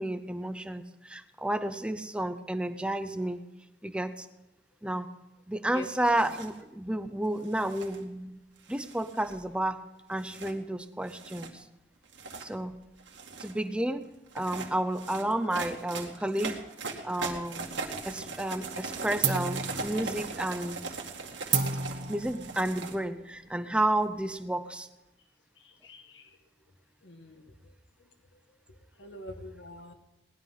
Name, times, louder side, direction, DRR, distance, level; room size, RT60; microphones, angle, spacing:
voice 1, 0.0-3.4 3.8-4.3 4.8-5.1 5.5-8.4 8.7-11.7 12.4-12.8 13.4-16.6 17.0-17.7 18.0-20.8 22.1-24.9, right 1 dB, 5° right, 10 dB, 0.5 m, -31 dB
Shaking rocks in a cup, 6.0-6.5 7.4-8.0 8.7-9.5 10.2-10.5 11.1-11.5 12.0-12.5 13.0-13.6 14.3-23.0, right 4 dB, 90° right, 2.1 m, -39 dB
sound 1, 17.3-18.2 18.5-18.9 19.2-24.4, right 6 dB, 65° right, 1.5 m, -34 dB
voice 2, 25.8-26.2 27.0-27.4 29.0-29.9, left 1 dB, 90° left, 6 dB, 1.6 m, -44 dB
19.0 x 11.5 x 5.6 m, 1.0 s
head